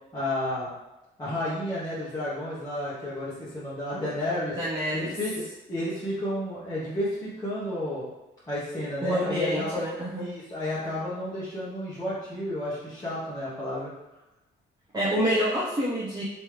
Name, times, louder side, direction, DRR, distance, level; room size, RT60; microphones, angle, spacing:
voice 1, 0.1-0.7 1.2-4.6 4.9-8.0 8.5-9.9 10.2-13.9, left 1 dB, 15° left, -10 dB, 1.1 m, -31 dB
voice 2, 4.6-5.1 9.0-10.2 14.9-16.2, equal, 20° right, -8 dB, 0.9 m, -27 dB
3.4 x 3.1 x 3.2 m, 0.95 s
cardioid pair, 90°, 20 cm